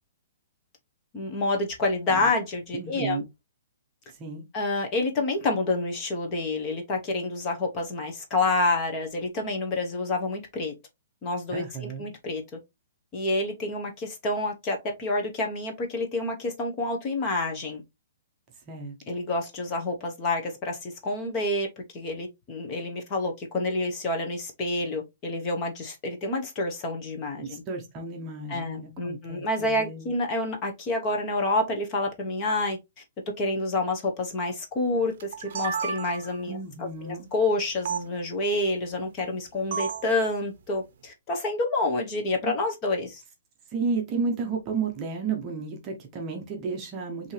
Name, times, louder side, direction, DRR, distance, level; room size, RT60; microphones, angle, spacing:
voice 1, 1.1-3.2 4.5-10.7 11.2-12.4 13.1-17.8 19.1-21.7 21.9-27.6 28.5-32.8 33.4-43.2, left 2 dB, 20° left, 1.0 m, -28 dB
voice 2, 2.7-3.2 4.1-4.4 11.5-12.1 18.7-19.0 27.4-30.1 36.5-37.3 42.4-42.5 43.7-47.3, right 4 dB, 20° right, 0.8 m, -32 dB
sound 1, 35.2-36.4 37.9-38.0 39.7-40.1, right 6 dB, 50° right, 0.7 m, -31 dB
5.2 x 2.8 x 3.2 m
hypercardioid pair, 170°, 0 cm